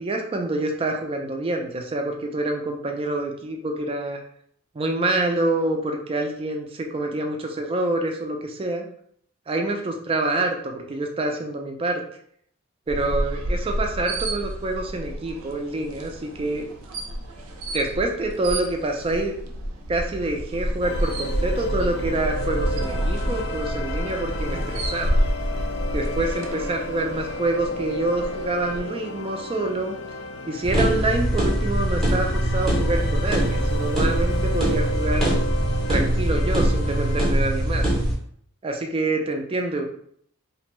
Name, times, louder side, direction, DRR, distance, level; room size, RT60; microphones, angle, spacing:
voice 1, 0.0-4.2 4.7-8.9 9.5-12.0 12.9-16.6 17.7-19.4 19.9-25.2 25.9-29.9 30.5-35.3 35.9-37.9 38.6-39.8, right 2 dB, 25° right, 3 dB, 0.3 m, -26 dB
sound 1, 12.9-28.8, equal, 85° right, 0.5 m, -29 dB
sound 2, 20.8-37.3, left 1 dB, 50° left, 0.3 m, -33 dB
sound 3, 30.6-38.1, right 1 dB, ahead, 0.7 m, -22 dB
2.5 x 2.1 x 3.0 m, 0.65 s
head